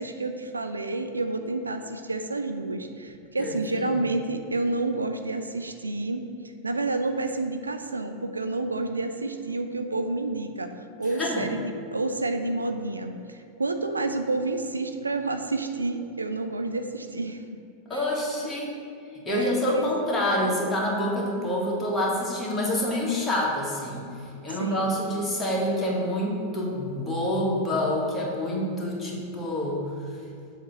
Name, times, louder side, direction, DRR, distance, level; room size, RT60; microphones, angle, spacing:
voice 1, 0.0-6.2 6.6-17.5 17.9-18.0 19.3-19.9 20.4-20.6 24.5-24.9, right 2 dB, 80° right, 7 dB, 0.3 m, -29 dB
voice 2, 3.4-3.9 11.2-11.4 17.9-18.7 19.2-24.0 24.4-29.8, left 1 dB, 10° left, -4 dB, 1.5 m, -27 dB
6.9 x 2.9 x 5.8 m, 2.4 s
figure-of-eight pair, 90°, 0 cm